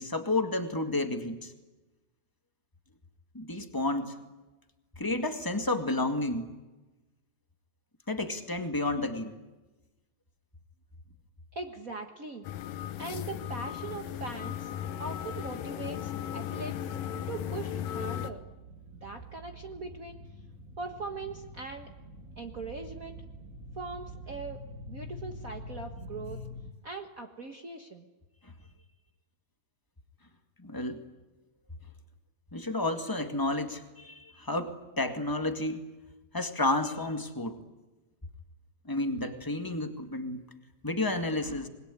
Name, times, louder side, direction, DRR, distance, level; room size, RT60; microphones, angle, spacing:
voice 1, 0.0-1.5 3.3-4.2 5.0-6.5 8.1-9.3 30.6-31.0 32.5-35.9 36.3-37.6 38.8-40.4 40.8-41.7, left 2 dB, 15° left, 6 dB, 0.8 m, -31 dB
voice 2, 11.5-12.5 13.0-14.7 15.0-16.8 17.3-18.4 19.0-20.2 20.8-21.9 22.4-23.2 23.8-24.6 24.9-26.4 26.8-28.1, right 3 dB, 70° right, 4 dB, 0.8 m, -40 dB
sound 1, 12.4-18.3, left 10 dB, 75° left, 2.6 m, -36 dB
sound 2, 16.1-26.7, equal, 30° right, 1.8 m, -47 dB
27.0 x 21.5 x 10.0 m, 1.1 s
omnidirectional pair, 4.1 m